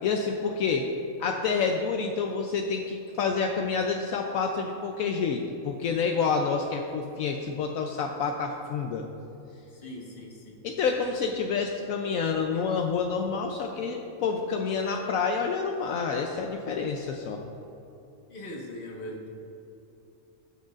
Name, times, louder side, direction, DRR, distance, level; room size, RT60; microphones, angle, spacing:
voice 1, 0.0-0.9 1.2-9.0 10.6-17.4, left 5 dB, 75° left, 2 dB, 1.0 m, -28 dB
voice 2, 9.7-10.6 18.3-19.3, left 1 dB, 40° left, -2 dB, 1.4 m, -40 dB
17.5 x 6.4 x 2.4 m, 2.9 s
omnidirectional pair, 1.5 m